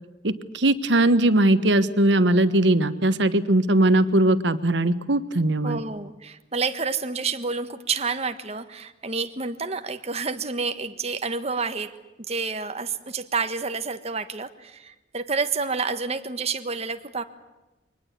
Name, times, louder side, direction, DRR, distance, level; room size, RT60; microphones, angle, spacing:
voice 1, 0.2-5.8, right 1 dB, 80° right, 12 dB, 1.3 m, -20 dB
voice 2, 5.6-11.9 12.3-17.2, right 4 dB, 35° right, 9 dB, 1.4 m, -29 dB
24.0 x 19.5 x 8.3 m, 1.1 s
head